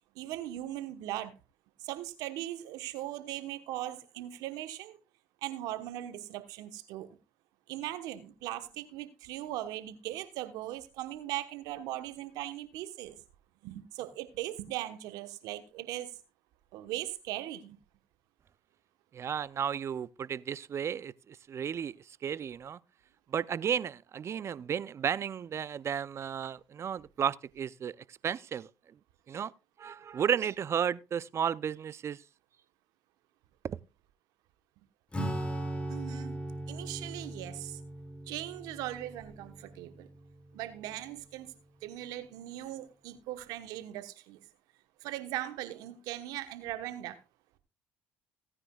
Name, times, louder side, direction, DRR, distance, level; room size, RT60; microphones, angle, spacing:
voice 1, 0.1-1.3 1.8-5.0 5.4-7.1 7.7-13.2 13.6-16.2 16.7-17.8 35.9-36.4 36.7-37.8 38.3-40.1 40.5-41.5 41.8-44.4 45.0-47.2, right 14 dB, 75° right, 1.2 m, -39 dB
voice 2, 19.1-22.8 23.3-28.7 29.3-29.5 29.8-32.2 33.6-33.8, right 8 dB, 45° right, 0.5 m, -33 dB
Acoustic guitar / Strum, 35.1-41.1, right 1 dB, 15° left, 2.5 m, -39 dB
17.0 x 9.8 x 2.4 m
hypercardioid pair, 65°, 6 cm